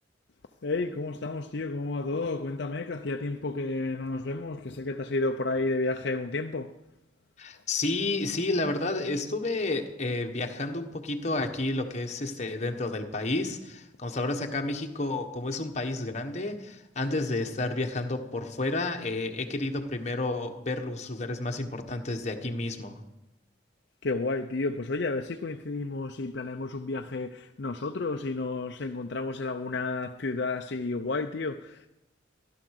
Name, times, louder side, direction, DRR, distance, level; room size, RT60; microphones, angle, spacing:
voice 1, 0.6-6.7 24.0-31.9, left 3 dB, 60° left, 0.6 m, -31 dB
voice 2, 7.4-23.0, left 2 dB, 35° left, 1.4 m, -31 dB
15.5 x 11.5 x 6.6 m
head